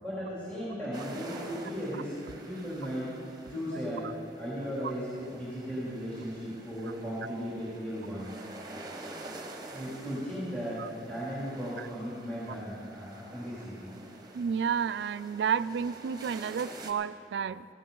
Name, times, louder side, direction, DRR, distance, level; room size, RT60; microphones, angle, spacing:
voice 1, 0.0-2.1 2.4-3.1 3.5-4.1 4.4-8.4 9.7-14.0, equal, 10° left, -10 dB, 3.1 m, -36 dB
sound 1, 0.9-16.9, right 2 dB, 20° right, 1.1 m, -48 dB
voice 2, 14.3-17.7, right 7 dB, 70° right, 15 dB, 0.3 m, -31 dB
16.5 x 15.0 x 3.8 m, 2.6 s
head